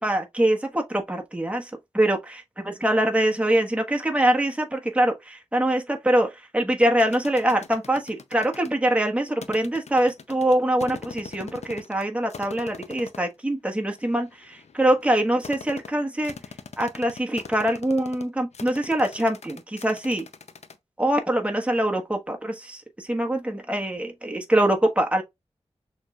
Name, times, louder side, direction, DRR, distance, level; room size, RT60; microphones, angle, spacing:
voice 1, 0.0-16.3 16.8-20.3 21.0-25.2, right 1 dB, 10° right, 1.3 m, -24 dB
sound 1, 7.0-8.7 9.4-12.0 12.3-13.3 14.0-20.7, left 5 dB, 80° left, 0.6 m, -41 dB
6.3 x 3.2 x 2.3 m
wide cardioid pair, 70°, 11 cm